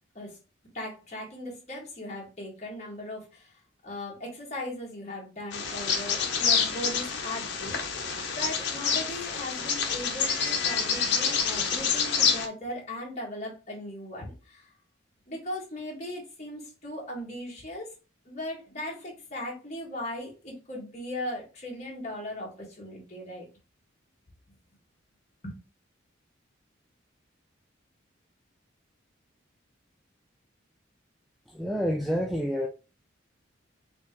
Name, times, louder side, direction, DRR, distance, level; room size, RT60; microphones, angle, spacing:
voice 1, 0.7-3.5 3.8-8.0 8.3-14.7 15.3-17.9 18.3-23.5 25.4-25.5, left 1 dB, 35° left, 1.8 m, -38 dB
Bird vocalization bird call bird song, 5.5-12.5, left 6 dB, 55° left, 0.8 m, -27 dB
voice 2, 31.5-32.7, equal, ahead, 0.3 m, -28 dB
4.3 x 3.6 x 3.1 m
head